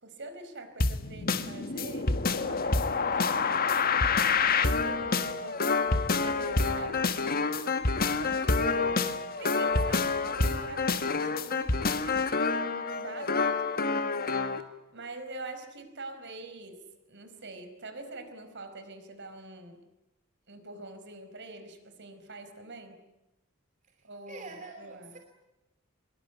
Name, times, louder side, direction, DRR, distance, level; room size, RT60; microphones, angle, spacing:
voice 1, 0.0-3.7 4.6-7.6 8.1-9.1 9.4-12.4 12.6-19.8 20.5-23.0 24.0-25.2, right 2 dB, 55° right, 8 dB, 4.9 m, -45 dB
sound 1, 0.8-14.6, left 4 dB, 45° left, 1.6 m, -27 dB
voice 2, 24.3-25.2, right 3 dB, 35° right, 4 dB, 2.8 m, -45 dB
24.5 x 23.0 x 9.4 m, 0.99 s
head